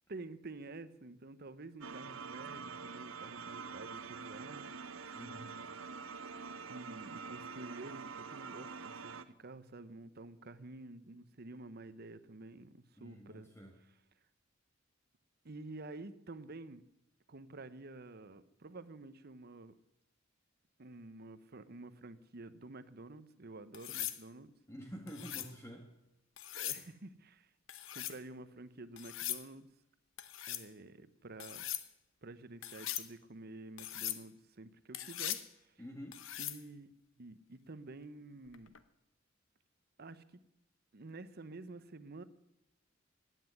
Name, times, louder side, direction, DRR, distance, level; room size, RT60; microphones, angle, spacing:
voice 1, 0.1-4.7 6.7-13.5 15.4-16.8 17.3-19.7 20.8-24.5 26.5-27.5 27.9-29.7 30.5-31.6 32.2-35.7 36.4-36.9 37.2-38.7 40.0-40.2 40.9-42.2, right 2 dB, 50° right, 14 dB, 0.9 m, -50 dB
sound 1, 1.8-9.2, right 5 dB, 85° right, 0.9 m, -46 dB
voice 2, 5.1-5.6 13.0-13.7 24.7-25.9 35.8-36.2, equal, 15° left, 2 dB, 1.5 m, -48 dB
sound 2, 23.7-24.2 25.1-25.5 26.4-26.9 27.7-28.2 29.0-29.4 30.2-30.7 31.4-31.9 32.6-33.1 33.8-34.2 34.9-35.5 36.1-36.6 38.5-38.8, left 12 dB, 75° left, 1.0 m, -40 dB
15.5 x 9.3 x 9.6 m, 0.87 s
head